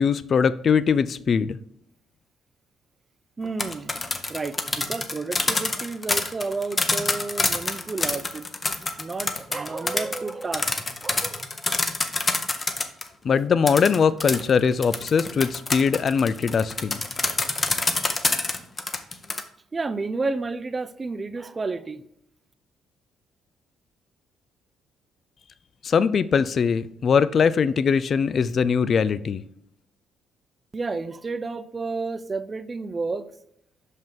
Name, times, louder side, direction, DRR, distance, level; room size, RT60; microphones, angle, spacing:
voice 1, 0.0-1.6 13.2-17.0 25.8-29.4, left 6 dB, 50° left, 16 dB, 0.4 m, -21 dB
sound 1, 3.4-13.1 13.7-19.4, left 3 dB, 30° left, 0.9 m, -26 dB
voice 2, 3.4-3.9 4.3-8.5 9.0-10.7 11.0-11.4 19.7-22.0 30.7-33.3, right 3 dB, 35° right, 12 dB, 0.4 m, -31 dB
5.9 x 5.4 x 3.6 m, 0.74 s
supercardioid pair, 65°, 0 cm